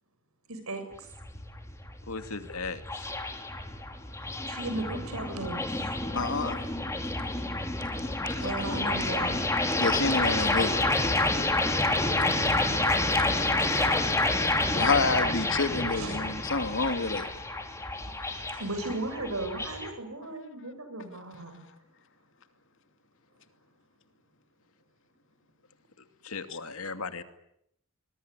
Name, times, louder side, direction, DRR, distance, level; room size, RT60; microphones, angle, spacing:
voice 1, 0.5-1.1 4.5-5.9 8.4-9.5 12.8-13.9 14.3-14.5 15.8-16.3 18.3-21.6, right 2 dB, 80° right, 8 dB, 7.2 m, -37 dB
sound 1, 0.9-19.9, left 2 dB, 15° left, 3.3 m, -29 dB
voice 2, 2.1-3.1 26.2-27.2, left 4 dB, 80° left, 9 dB, 2.5 m, -37 dB
voice 3, 6.1-6.6 8.7-8.8 9.7-10.7 14.7-17.3, left 3 dB, 60° left, 8 dB, 2.7 m, -28 dB
25.5 x 21.5 x 9.9 m, 0.76 s
head